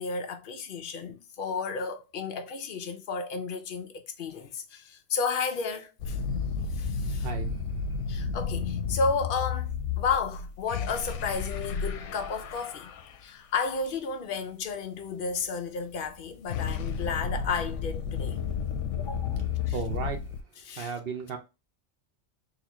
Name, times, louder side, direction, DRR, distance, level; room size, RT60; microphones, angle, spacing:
voice 1, 0.0-6.2 6.7-7.3 8.1-12.9 13.2-18.4 19.0-19.8 20.6-20.9, left 5 dB, 55° left, 0.8 m, -32 dB
sound 1, 6.0-13.2 16.0-20.4, left 6 dB, 85° left, 1.0 m, -32 dB
voice 2, 7.2-7.6 19.7-20.4 20.7-21.4, right 6 dB, 60° right, 0.8 m, -35 dB
4.0 x 2.7 x 2.9 m
omnidirectional pair, 1.2 m